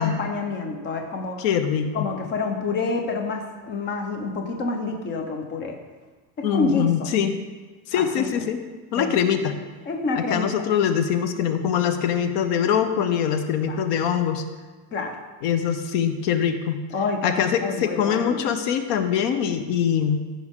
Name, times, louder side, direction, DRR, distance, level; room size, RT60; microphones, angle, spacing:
voice 1, 0.0-1.4 1.9-5.8 6.5-7.1 7.9-8.5 8.9-9.3 9.9-10.5 13.7-13.8 14.9-15.1 16.9-18.4, left 3 dB, 25° left, 3 dB, 0.8 m, -28 dB
voice 2, 1.4-2.1 6.4-7.4 7.9-8.6 8.9-9.5 10.2-14.4 15.4-16.8 17.2-20.2, left 8 dB, 70° left, 8 dB, 0.9 m, -23 dB
15.0 x 5.3 x 3.7 m, 1.3 s
cardioid pair, 180°, 45 cm